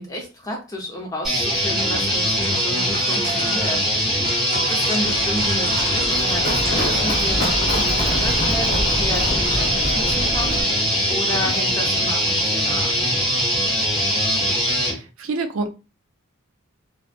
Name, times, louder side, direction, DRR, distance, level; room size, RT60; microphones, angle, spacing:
voice 1, 0.0-4.1 4.5-10.6 11.1-13.0, equal, 15° left, 0 dB, 0.7 m, -32 dB
sound 1, 1.2-14.9, equal, ahead, 1.3 m, -21 dB
sound 2, 1.4-9.0, right 1 dB, 45° right, 0.9 m, -36 dB
Run, 5.0-10.6, equal, 40° left, 0.9 m, -27 dB
voice 2, 14.7-15.7, right 3 dB, 70° right, 6 dB, 0.4 m, -28 dB
3.1 x 2.0 x 2.4 m, 0.30 s
head